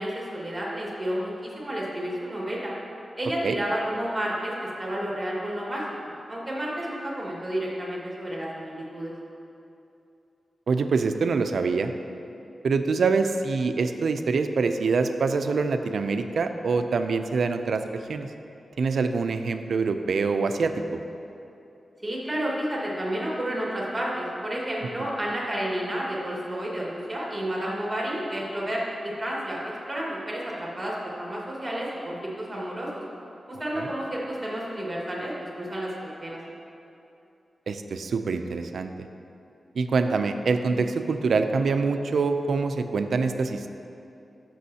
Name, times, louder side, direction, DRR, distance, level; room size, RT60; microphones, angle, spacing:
voice 1, 0.0-2.7 3.2-9.1 22.0-33.0 33.5-36.4, right 1 dB, 15° right, -5 dB, 1.7 m, -31 dB
voice 2, 10.7-11.9 12.6-17.8 18.1-18.3 18.8-21.0 33.8-33.9 37.7-39.1 39.8-43.7, right 4 dB, 75° right, 8 dB, 0.4 m, -25 dB
14.0 x 6.1 x 2.8 m, 2.8 s
wide cardioid pair, 145°, 0 cm